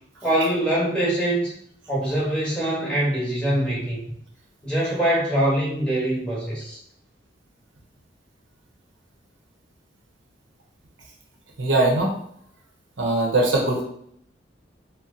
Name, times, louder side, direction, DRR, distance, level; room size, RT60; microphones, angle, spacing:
voice 1, 0.2-1.5 1.9-4.0 4.6-6.8, right 1 dB, 5° left, -6 dB, 0.9 m, -23 dB
voice 2, 11.6-12.2 13.0-13.8, right 2 dB, 75° right, 0 dB, 0.7 m, -21 dB
2.8 x 2.0 x 3.7 m, 0.67 s
head